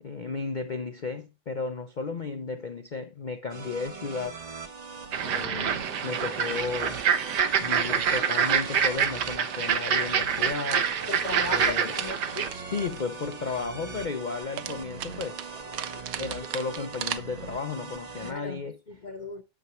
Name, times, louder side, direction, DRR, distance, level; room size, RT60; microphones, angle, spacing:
voice 1, 0.0-4.4 5.2-7.0 7.6-10.9 11.5-11.9 12.7-15.4 16.2-18.8, left 4 dB, 75° left, 0.4 m, -34 dB
sound 1, 3.5-18.3, right 4 dB, 45° right, 0.5 m, -40 dB
sound 2, 5.1-12.5, right 7 dB, 85° right, 1.5 m, -26 dB
sound 3, 8.6-9.5 10.7-13.4 14.6-17.2, right 10 dB, 65° right, 1.0 m, -38 dB
voice 2, 11.1-12.5 18.2-18.6 18.9-19.4, left 2 dB, 40° left, 0.7 m, -36 dB
8.9 x 6.8 x 3.1 m
omnidirectional pair, 1.8 m